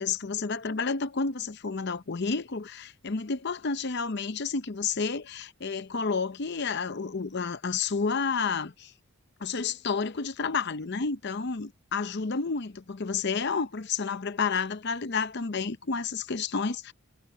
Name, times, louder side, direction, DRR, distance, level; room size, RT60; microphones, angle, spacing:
voice 1, 0.0-8.9 9.4-16.9, left 5 dB, 50° left, 0.7 m, -30 dB
head